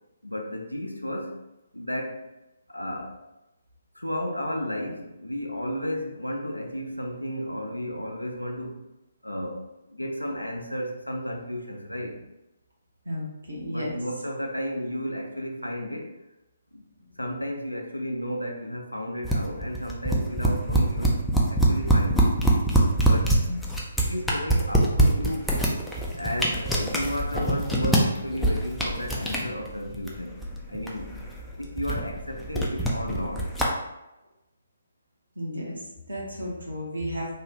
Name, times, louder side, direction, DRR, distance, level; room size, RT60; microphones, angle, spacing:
voice 1, 0.2-1.4 1.7-2.3 2.7-3.2 3.9-8.8 9.2-12.2 13.6-16.1 16.7-16.8 17.2-21.2 21.5-22.4 23.0-23.4 24.0-25.5 26.1-30.4 30.7-31.1 31.6-33.5, equal, 85° left, 2 dB, 0.5 m, -33 dB
voice 2, 13.0-14.0 23.4-23.6 35.3-37.3, equal, 70° right, -4 dB, 1.0 m, -33 dB
sound 1, 19.2-33.6, right 1 dB, ahead, 0.4 m, -24 dB
3.1 x 2.3 x 2.8 m, 0.95 s
figure-of-eight pair, 135°, 0 cm